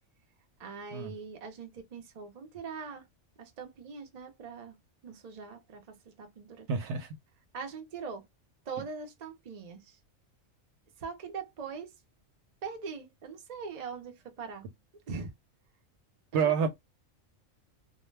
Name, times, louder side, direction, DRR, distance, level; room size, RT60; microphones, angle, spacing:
voice 1, 0.6-3.1 3.4-4.8 5.0-6.7 7.5-8.3 8.7-10.0 11.0-11.9 12.6-14.7 15.1-15.3 16.3-16.5, right 5 dB, 45° right, 0.5 m, -42 dB
voice 2, 6.7-7.1 16.3-16.7, right 6 dB, 65° right, 0.9 m, -28 dB
2.3 x 2.1 x 3.1 m
omnidirectional pair, 1.3 m